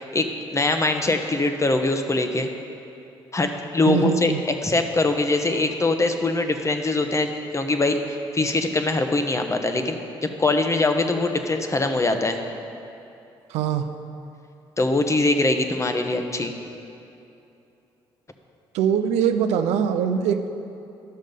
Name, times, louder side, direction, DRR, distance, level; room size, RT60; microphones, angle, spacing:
voice 1, 0.0-2.5 3.3-4.3 4.6-12.4 14.8-16.5, left 2 dB, 25° left, 6 dB, 1.0 m, -23 dB
voice 2, 3.9-4.4 13.5-13.9 18.7-20.5, right 8 dB, 85° right, 8 dB, 0.5 m, -22 dB
11.5 x 6.4 x 5.4 m, 2.8 s
supercardioid pair, 55°, 11 cm